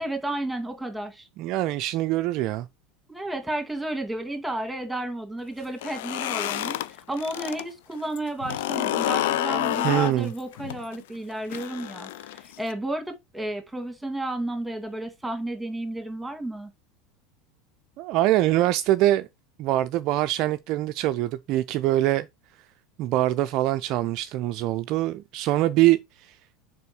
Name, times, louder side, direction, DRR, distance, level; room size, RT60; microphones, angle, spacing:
voice 1, 0.0-1.3 3.1-16.7, right 1 dB, 5° right, 2.2 m, -32 dB
voice 2, 1.4-2.7 9.8-10.3 18.0-19.3 19.6-22.3 23.0-26.0 26.3-26.4, right 14 dB, 45° right, 0.4 m, -23 dB
sound 1, 5.7-7.6 7.9-12.7, left 14 dB, 60° left, 0.5 m, -29 dB
6.8 x 4.8 x 4.6 m
figure-of-eight pair, 75°, 0 cm